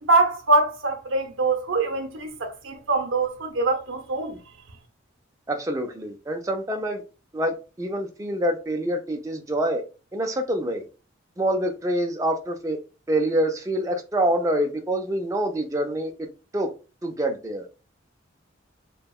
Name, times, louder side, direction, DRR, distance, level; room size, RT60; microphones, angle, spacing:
voice 1, 0.0-4.4, right 3 dB, 70° right, 0.6 m, -23 dB
voice 2, 5.5-7.0 7.3-9.8 10.1-10.8 11.4-12.8 13.1-16.3 16.5-16.7 17.0-17.6, right 1 dB, 15° right, 0.4 m, -26 dB
2.7 x 2.2 x 2.3 m
head